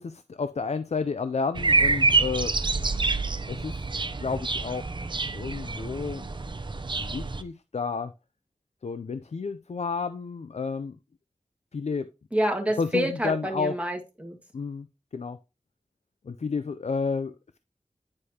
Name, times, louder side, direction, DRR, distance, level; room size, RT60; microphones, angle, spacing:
voice 1, 0.0-2.6 2.9-3.1 3.5-3.8 4.2-4.9 5.3-6.3 7.0-8.1 8.8-11.0 11.7-12.1 12.8-13.8 14.5-14.9 15.1-15.4 16.2-17.6, left 5 dB, 65° left, 12 dB, 0.4 m, -31 dB
sound 1, 1.5-7.4, right 3 dB, 40° right, 0.6 m, -27 dB
voice 2, 12.3-14.4, equal, 10° right, 2 dB, 1.8 m, -28 dB
9.6 x 4.9 x 2.8 m, 0.27 s
wide cardioid pair, 60°, 12 cm